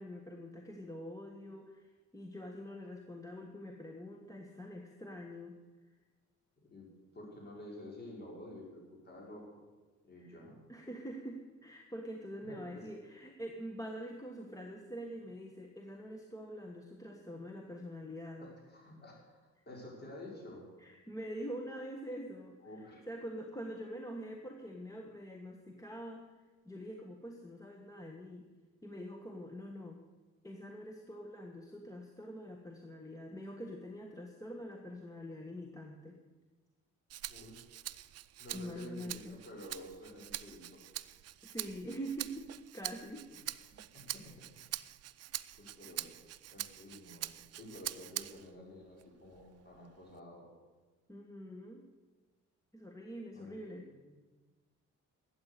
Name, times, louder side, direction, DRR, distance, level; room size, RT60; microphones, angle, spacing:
voice 1, 0.0-5.5 10.2-10.4 10.7-18.5 20.8-22.6 23.1-26.3 26.6-28.4 28.8-30.0 30.4-36.2 38.5-39.4 41.4-43.3 51.1-51.8 52.7-53.9, equal, 10° left, 2 dB, 1.5 m, -45 dB
voice 2, 7.1-9.6 10.0-10.6 12.4-12.9 18.4-19.4 19.7-20.6 22.6-23.1 37.3-37.7 38.4-40.8 43.7-44.6 45.6-46.1 46.5-50.5 53.3-53.6 54.0-54.2, left 1 dB, 35° left, -3 dB, 5.6 m, -50 dB
Rattle (instrument), 37.1-48.5 49.0-50.2, right 13 dB, 55° right, 0.5 m, -44 dB
12.5 x 8.8 x 8.4 m, 1.3 s
cardioid pair, 90°, 30 cm